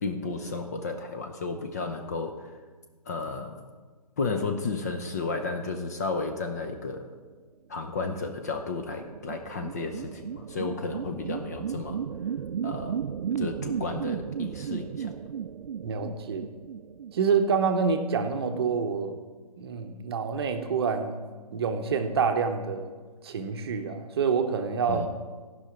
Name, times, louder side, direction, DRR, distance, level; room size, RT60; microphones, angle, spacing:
voice 1, 0.0-2.5 3.1-3.6 4.2-7.1 7.7-12.0 12.6-13.0 13.4-15.1 24.9-25.1, left 4 dB, 25° left, 6 dB, 0.5 m, -33 dB
sound 1, 8.1-17.9, right 8 dB, 80° right, 0.4 m, -35 dB
voice 2, 15.8-16.5 17.1-19.2 19.6-21.2 21.5-22.9 23.2-25.1, right 5 dB, 40° right, 6 dB, 0.8 m, -27 dB
15.0 x 5.7 x 5.0 m, 1.4 s
hypercardioid pair, 160°, 21 cm